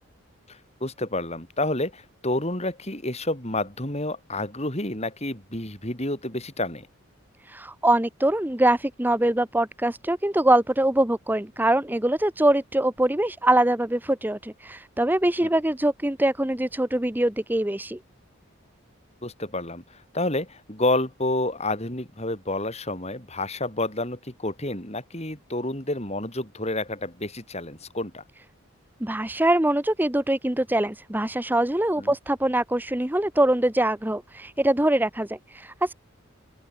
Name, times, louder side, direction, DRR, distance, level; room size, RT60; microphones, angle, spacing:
voice 1, 0.5-6.9 15.4-15.5 19.2-28.2 32.0-32.1, left 2 dB, 30° left, 7.1 m, -29 dB
voice 2, 7.4-18.0 29.0-35.9, right 1 dB, 10° right, 0.8 m, -23 dB
open air
head